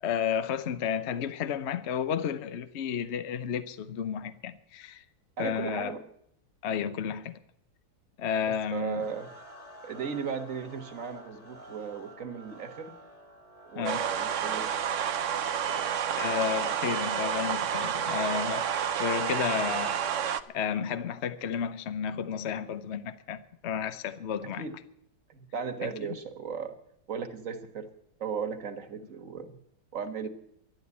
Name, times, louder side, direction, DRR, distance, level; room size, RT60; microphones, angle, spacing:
voice 1, 0.0-5.0 5.4-5.9 6.6-7.4 8.2-9.1 13.8-14.1 16.2-18.7 19.0-20.0 20.5-24.7 25.8-26.1, left 8 dB, 65° left, 0.6 m, -32 dB
voice 2, 5.4-6.0 8.5-9.3 9.8-12.9 13.7-14.9 15.8-16.2 24.6-24.8 25.3-26.8 27.1-27.9 28.2-29.6 29.9-30.3, right 6 dB, 45° right, 1.7 m, -36 dB
sound 1, 8.9-23.0, right 1 dB, 20° left, 1.9 m, -53 dB
sound 2, 13.8-20.4, right 8 dB, 65° right, 0.7 m, -30 dB
12.0 x 12.0 x 8.4 m
omnidirectional pair, 2.2 m